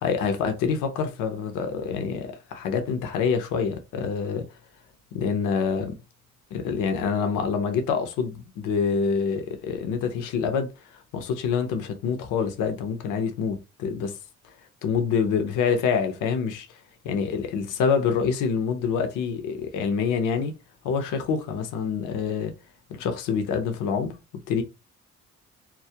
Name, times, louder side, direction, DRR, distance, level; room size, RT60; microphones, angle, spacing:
voice 1, 0.0-4.5 5.1-6.0 6.5-10.7 11.1-14.2 14.8-16.7 17.0-20.6 20.8-22.5 22.9-24.2 24.5-24.6, left 6 dB, 85° left, 0.6 m, -26 dB
2.3 x 2.0 x 2.7 m
cardioid pair, 90°, 30 cm